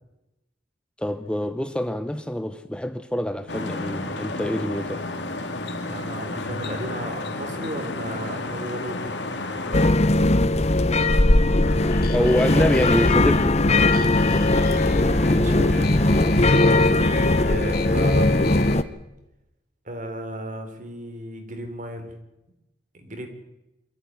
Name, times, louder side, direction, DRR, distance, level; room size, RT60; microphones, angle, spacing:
voice 1, 1.0-5.1 12.1-13.6, equal, 5° left, 0.7 m, -26 dB
sound 1, 3.5-9.9, left 2 dB, 75° left, 2.5 m, -31 dB
voice 2, 5.9-9.2 14.6-16.0 17.0-18.5 19.9-22.1 22.9-23.3, right 1 dB, 45° right, 3.8 m, -35 dB
sound 2, 9.7-18.8, left 2 dB, 40° left, 0.9 m, -19 dB
sound 3, 11.6-18.7, left 4 dB, 55° left, 2.7 m, -36 dB
24.5 x 14.0 x 9.5 m
head